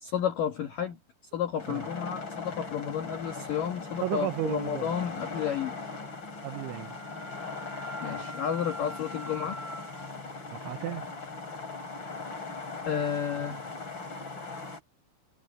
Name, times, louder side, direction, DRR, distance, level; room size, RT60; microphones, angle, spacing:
voice 1, 0.0-1.0 1.3-5.8 8.0-9.6 12.9-13.6, left 9 dB, 75° left, 2.0 m, -31 dB
sound 1, 1.6-14.8, left 4 dB, 25° left, 4.9 m, -39 dB
voice 2, 4.0-4.9 6.4-7.0 10.5-11.1, right 14 dB, 80° right, 3.1 m, -34 dB
Wind instrument woodwind instrument, 5.4-10.1, right 1 dB, 5° right, 5.3 m, -45 dB
omnidirectional pair, 5.9 m